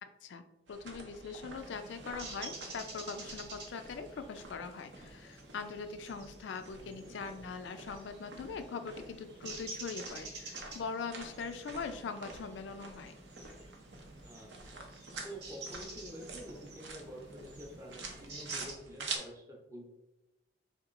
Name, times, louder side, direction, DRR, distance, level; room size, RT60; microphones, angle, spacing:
voice 1, 0.0-13.2, left 5 dB, 80° left, 9 dB, 0.3 m, -42 dB
sound 1, 0.7-19.2, right 3 dB, 90° right, 0.6 m, -48 dB
sound 2, 1.5-18.7, right 3 dB, 70° right, 0.9 m, -50 dB
voice 2, 6.7-7.1 14.2-19.9, equal, 15° right, -2 dB, 0.5 m, -49 dB
3.7 x 2.9 x 2.5 m, 0.97 s
head